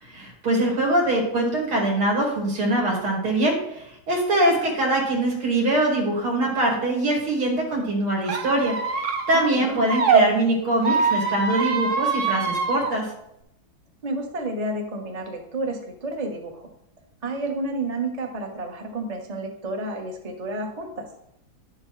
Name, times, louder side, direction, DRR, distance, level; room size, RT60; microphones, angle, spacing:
voice 1, 0.0-13.1, right 1 dB, 80° right, -1 dB, 3.2 m, -23 dB
Squeak, 8.2-10.2 10.8-12.9, right 5 dB, 55° right, 0.8 m, -24 dB
voice 2, 9.3-9.8 14.0-16.7 17.2-21.1, right 2 dB, 25° right, 2 dB, 0.8 m, -30 dB
10.5 x 7.4 x 3.2 m, 0.79 s
omnidirectional pair, 2.3 m